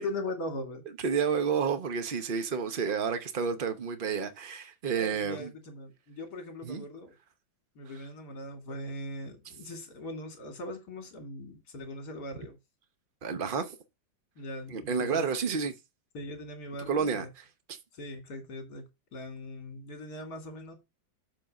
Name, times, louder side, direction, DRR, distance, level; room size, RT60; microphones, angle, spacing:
voice 1, 0.0-0.8 5.0-7.1 7.8-12.6 14.4-15.3 16.1-17.3 17.9-18.9 19.1-20.8, left 1 dB, 55° left, 2.8 m, -40 dB
voice 2, 1.0-5.5 6.6-6.8 13.2-13.8 14.7-15.7 16.9-17.2, right 6 dB, 45° right, 0.6 m, -30 dB
7.4 x 4.0 x 6.4 m
omnidirectional pair, 2.2 m